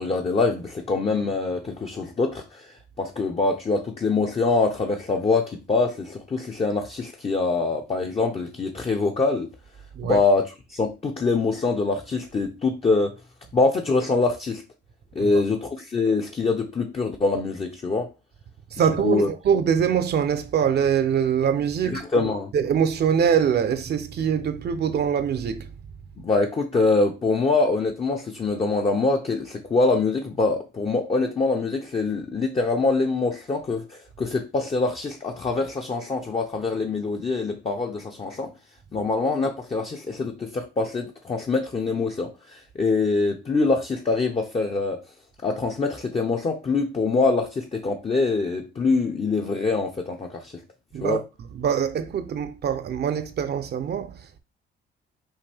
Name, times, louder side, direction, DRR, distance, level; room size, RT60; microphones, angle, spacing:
voice 1, 0.0-9.5 10.0-13.2 13.5-14.6 15.1-18.1 19.0-19.3 21.8-22.5 26.2-38.5 38.9-45.0 45.4-50.5 51.0-51.2, left 3 dB, 30° left, 0.7 m, -24 dB
voice 2, 18.7-22.3 22.5-25.7 39.0-39.1 50.9-51.2 51.5-54.4, right 8 dB, 55° right, 0.7 m, -24 dB
5.5 x 2.6 x 3.5 m
cardioid pair, 90°, 20 cm